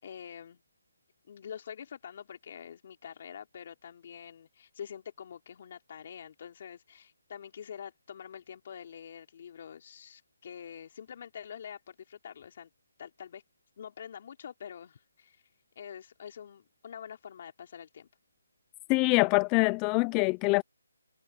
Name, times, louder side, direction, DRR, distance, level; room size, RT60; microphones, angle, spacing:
voice 1, 0.0-0.6 1.3-12.7 13.0-13.4 13.8-15.4 15.8-18.1, left 8 dB, 35° left, 3.8 m, -46 dB
voice 2, 18.9-20.6, left 28 dB, 15° left, 0.4 m, -24 dB
hypercardioid pair, 165°, 0 cm